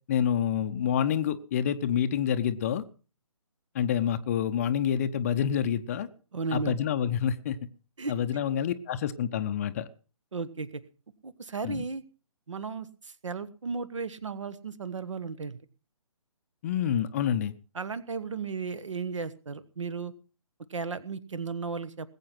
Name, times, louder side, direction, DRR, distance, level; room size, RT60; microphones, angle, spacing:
voice 1, 0.1-2.8 3.7-6.1 6.5-7.6 8.1-9.9 11.6-11.8 16.6-17.5, left 9 dB, 25° left, 11 dB, 0.8 m, -27 dB
voice 2, 6.3-6.8 8.0-8.1 10.3-10.8 11.2-12.0 12.5-15.6 17.7-20.1 20.7-22.1, right 4 dB, 60° right, 16 dB, 1.4 m, -35 dB
20.0 x 8.5 x 6.0 m, 0.37 s
figure-of-eight pair, 140°, 18 cm